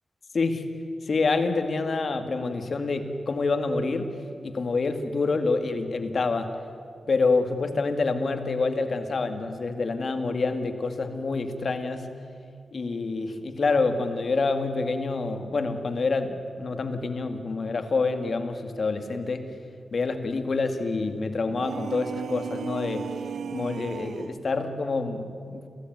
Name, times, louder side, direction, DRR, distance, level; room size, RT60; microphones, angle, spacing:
voice 1, 0.3-0.7 1.0-4.2 4.4-6.5 7.1-12.1 12.7-19.5 19.9-23.1 23.5-25.7, left 3 dB, 60° left, 7 dB, 2.1 m, -27 dB
sound 1, 21.5-24.4, right 7 dB, 90° right, 0.6 m, -35 dB
28.0 x 16.5 x 9.3 m, 2.4 s
cardioid pair, 75°, 0 cm